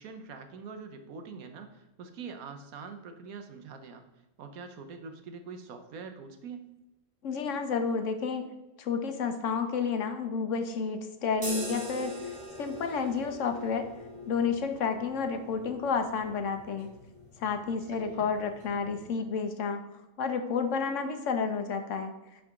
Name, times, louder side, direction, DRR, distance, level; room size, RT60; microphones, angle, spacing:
voice 1, 0.0-4.0 4.4-6.6 17.9-18.3, right 5 dB, 75° right, 6 dB, 1.3 m, -44 dB
voice 2, 7.2-8.4 8.8-12.1 12.6-13.8 14.3-16.9 17.4-19.8 20.2-22.1, left 5 dB, 65° left, 7 dB, 0.9 m, -30 dB
sound 1, 11.3-19.1, left 1 dB, 45° right, 3.0 m, -43 dB
10.5 x 3.8 x 3.6 m, 1.0 s
omnidirectional pair, 1.5 m